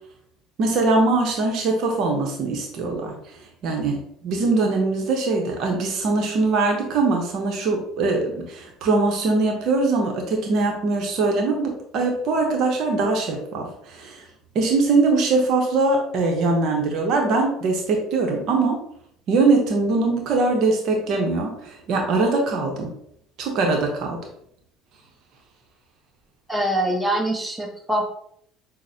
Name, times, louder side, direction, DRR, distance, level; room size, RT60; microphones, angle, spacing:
voice 1, 0.6-3.1 3.6-14.2 14.5-18.8 19.3-22.9 23.4-24.2, right 3 dB, 60° right, 2 dB, 0.8 m, -22 dB
voice 2, 26.5-28.1, right 1 dB, 10° right, 0 dB, 1.0 m, -24 dB
6.0 x 2.1 x 2.7 m, 0.71 s
hypercardioid pair, 65°, 0 cm